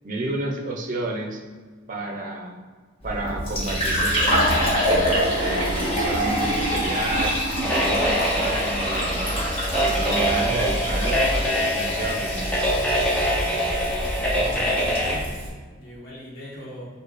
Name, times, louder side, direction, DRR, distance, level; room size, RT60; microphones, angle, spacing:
voice 1, 0.0-1.4 1.9-2.6 3.0-9.4 9.7-12.6, right 2 dB, 45° right, 1 dB, 0.6 m, -31 dB
Fill (with liquid), 3.0-15.5, equal, 30° left, 1.4 m, -25 dB
sound 1, 7.6-15.2, equal, 5° left, 0.7 m, -24 dB
voice 2, 14.2-15.2 15.8-16.9, equal, 50° left, -6 dB, 1.2 m, -40 dB
6.5 x 2.3 x 3.3 m, 1.4 s
head